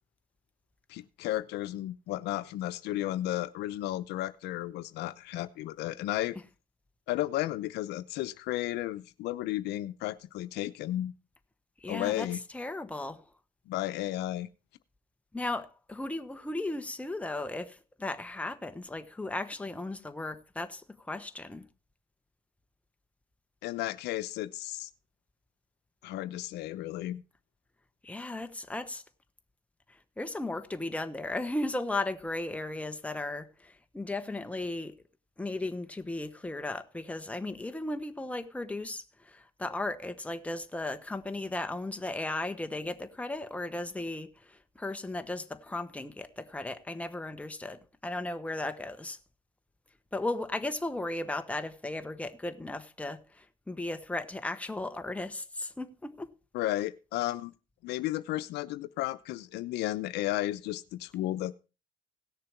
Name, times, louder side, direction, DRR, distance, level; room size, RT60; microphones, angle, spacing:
voice 1, 0.9-6.4 7.1-11.1 11.9-12.4 13.7-14.5 23.6-24.9 26.0-27.2 56.5-57.5 57.8-61.6, left 15 dB, 85° left, 0.8 m, -33 dB
voice 2, 11.8-12.3 12.5-13.2 15.3-21.7 28.0-29.0 29.9-34.9 35.4-49.2 50.1-56.3, left 2 dB, 10° left, 1.1 m, -36 dB
17.5 x 6.8 x 4.5 m
cardioid pair, 110°, 17 cm